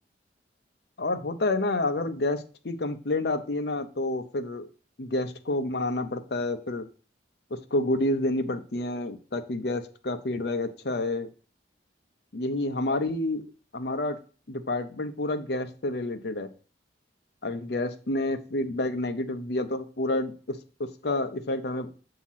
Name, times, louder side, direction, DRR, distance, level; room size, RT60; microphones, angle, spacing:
voice 1, 1.0-4.7 5.0-6.9 7.5-11.3 12.3-13.4 13.7-14.2 14.5-16.5 17.4-21.9, left 2 dB, 60° left, 8 dB, 0.7 m, -29 dB
7.3 x 2.9 x 5.7 m, 0.38 s
head